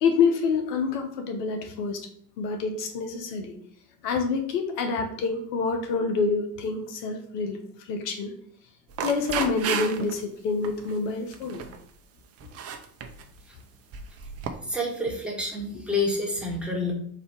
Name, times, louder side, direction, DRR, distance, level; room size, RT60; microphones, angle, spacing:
voice 1, 0.0-2.0 2.4-3.5 4.0-8.3 9.0-11.6 15.7-15.8, left 4 dB, 70° left, 4 dB, 0.9 m, -27 dB
sound 1, 8.9-10.2 10.6-10.9 11.3-11.8 12.4-13.3 13.9-14.5, right 6 dB, 30° right, 0.6 m, -32 dB
voice 2, 14.7-16.9, left 2 dB, ahead, -3 dB, 1.5 m, -28 dB
4.2 x 2.7 x 4.5 m, 0.64 s
hypercardioid pair, 80°, 50 cm